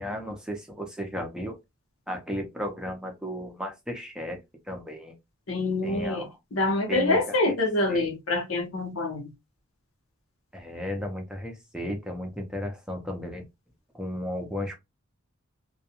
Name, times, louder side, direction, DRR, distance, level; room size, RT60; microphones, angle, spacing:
voice 1, 0.0-1.6 2.1-4.4 4.7-5.1 5.8-6.3 6.9-7.6 7.9-8.1 10.5-13.4 13.9-14.8, equal, 5° right, 0.5 m, -34 dB
voice 2, 5.5-9.3, left 2 dB, 85° left, 0.9 m, -26 dB
2.3 x 2.2 x 2.8 m
head